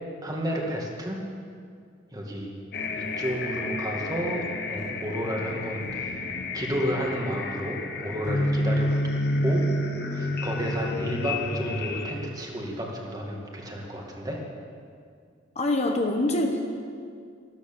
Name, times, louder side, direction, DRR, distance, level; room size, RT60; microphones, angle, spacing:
voice 1, 0.2-1.2 2.1-2.5 2.9-6.2 6.5-9.0 9.4-9.7 10.1-14.4, equal, 20° right, -1 dB, 2.1 m, -31 dB
sound 1, 2.7-12.1, left 1 dB, 55° left, 1.3 m, -29 dB
voice 2, 15.5-16.6, left 1 dB, 35° left, 2 dB, 1.2 m, -24 dB
13.5 x 13.0 x 7.0 m, 2.2 s
head